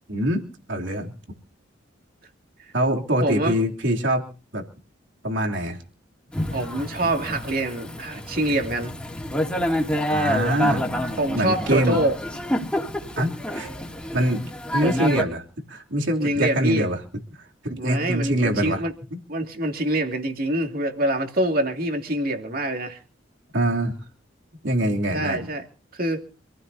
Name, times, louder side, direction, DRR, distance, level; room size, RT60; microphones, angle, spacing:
voice 1, 0.1-1.1 2.7-4.2 4.5-4.6 5.2-5.8 10.1-10.9 11.3-12.0 13.2-13.7 14.1-14.4 14.7-15.4 15.7-17.0 17.4-18.8 19.1-19.2 23.5-23.9 24.6-25.5, right 1 dB, 75° right, 1 dB, 3.1 m, -24 dB
voice 2, 3.2-3.6 6.5-8.9 11.2-12.2 14.8-15.3 16.2-16.9 17.8-18.9 19.3-23.0 25.1-25.6 26.0-26.2, right 1 dB, 50° right, 4 dB, 2.6 m, -25 dB
Thunder / Rain, 6.3-15.2, equal, 5° left, 2.8 m, -28 dB
26.5 x 15.5 x 2.8 m, 0.37 s
head